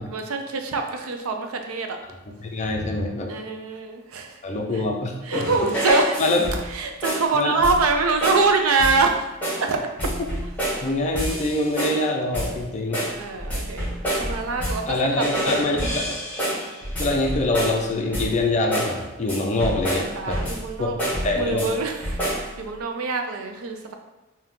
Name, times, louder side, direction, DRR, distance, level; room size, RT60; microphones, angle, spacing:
voice 1, 0.0-2.0 3.3-4.4 4.7-4.8 5.2-6.2 6.6-9.3 9.6-9.9 13.2-13.9 14.1-16.1 16.6-16.7 20.2-21.0 21.3-23.9, right 4 dB, 90° right, 4 dB, 0.5 m, -25 dB
voice 2, 2.4-3.3 4.4-5.5 6.2-6.5 7.3-7.5 10.8-13.0 14.9-16.1 17.0-20.5 20.8-20.9 21.2-21.7, left 2 dB, 35° left, 1 dB, 0.5 m, -24 dB
sound 1, 5.3-6.7 7.0-7.3 7.6-7.9 8.2-8.5 8.8-9.1 9.4-9.7 10.0-10.9 11.2-12.0 12.3-12.6 12.9-14.9 15.2-17.8 18.1-18.4 18.7-19.0 19.3-20.7 21.0-21.7 22.0-22.5, equal, 10° left, 1.3 m, -27 dB
3.6 x 2.7 x 3.6 m, 1.1 s
head